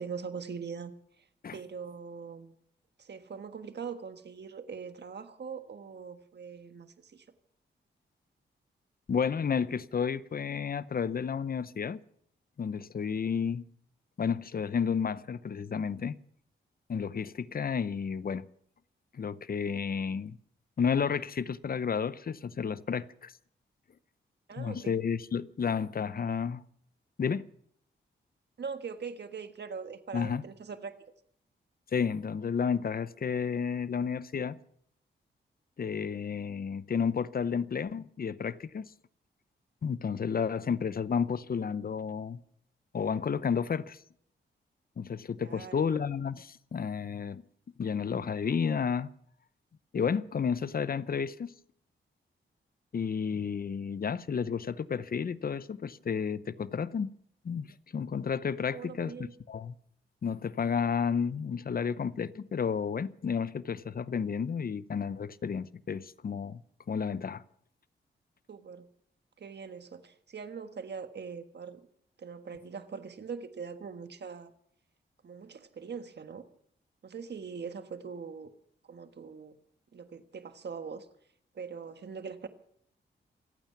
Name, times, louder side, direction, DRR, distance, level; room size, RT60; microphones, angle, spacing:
voice 1, 0.0-1.3 1.5-2.5 3.0-7.2 24.5-24.9 28.6-31.0 45.4-45.9 58.7-59.3 68.5-68.9 69.4-71.8 72.2-74.5 75.2-76.5 77.0-78.5 78.9-79.6 79.9-81.1 81.5-82.5, right 6 dB, 60° right, 1.4 m, -42 dB
voice 2, 9.1-12.0 12.6-13.6 14.2-16.2 16.9-18.5 19.1-20.4 20.8-23.3 24.6-26.6 27.2-27.4 30.1-30.4 31.9-34.6 35.8-38.9 39.8-42.4 42.9-44.0 45.0-47.4 47.8-49.1 49.9-51.5 52.9-57.1 57.4-57.7 57.9-59.1 59.5-59.7 60.2-66.6 66.9-67.4, left 6 dB, 50° left, 0.7 m, -31 dB
26.0 x 9.0 x 5.9 m
cardioid pair, 65°, 20 cm